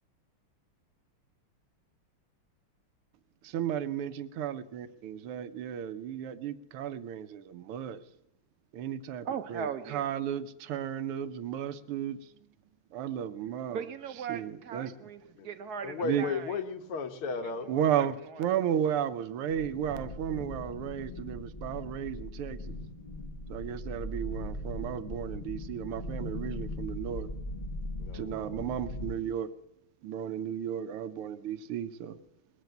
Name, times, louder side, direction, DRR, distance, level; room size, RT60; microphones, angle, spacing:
voice 1, 3.4-8.0 8.7-12.2 12.9-13.8 14.3-14.9 16.0-16.2 17.7-22.8 23.5-27.3 28.1-29.5 30.0-32.2, right 9 dB, 85° right, 12 dB, 1.7 m, -34 dB
voice 2, 9.2-10.1 13.7-16.6 17.6-18.5, right 7 dB, 65° right, 11 dB, 1.0 m, -39 dB
voice 3, 15.8-17.7 28.0-28.8, left 5 dB, 80° left, 8 dB, 2.1 m, -35 dB
sound 1, 19.5-29.1, left 1 dB, 30° left, 0.9 m, -39 dB
20.5 x 8.2 x 7.8 m, 0.76 s
omnidirectional pair, 2.4 m